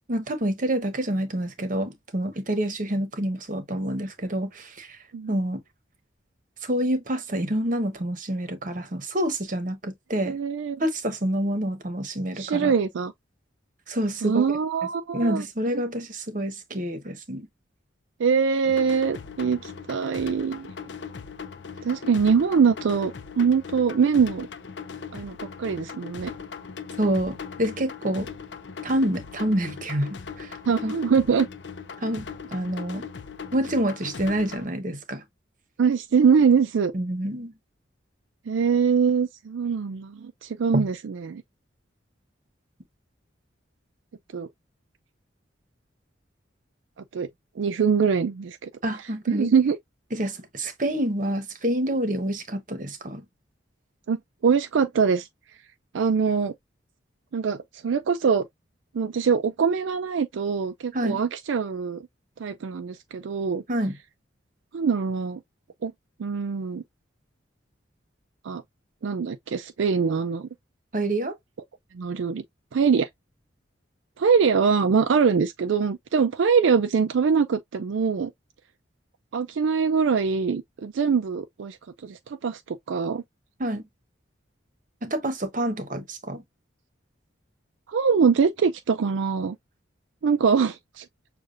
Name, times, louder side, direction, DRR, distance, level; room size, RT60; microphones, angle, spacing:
voice 1, 0.1-5.0 5.3-5.6 6.6-10.4 10.8-12.7 13.9-14.6 15.1-17.5 27.0-28.3 28.8-30.6 30.8-30.9 32.0-32.2 32.5-33.1 33.5-35.2 36.9-37.5 40.7-40.9 48.8-49.5 50.1-53.2 60.9-61.2 63.7-64.0 70.9-71.3 83.6-83.8 85.0-86.4, right 1 dB, 45° right, 0.9 m, -27 dB
voice 2, 10.2-10.8 12.4-13.1 14.2-15.4 18.2-20.7 21.8-24.5 25.1-26.3 30.7-31.5 35.8-36.9 38.5-41.4 44.3-44.5 47.1-47.3 47.6-48.7 49.3-49.8 54.1-54.2 54.4-55.3 55.9-56.5 57.3-57.6 57.8-58.5 58.9-62.0 62.4-63.6 64.7-65.4 65.8-65.9 66.2-66.8 68.4-68.6 69.0-70.5 71.9-72.4 72.7-73.1 74.2-78.3 79.3-81.8 82.0-83.2 87.9-89.6 90.2-91.0, right 6 dB, 80° right, 0.4 m, -23 dB
sound 1, 18.6-34.6, left 6 dB, 65° left, 0.5 m, -39 dB
6.5 x 2.4 x 2.4 m
head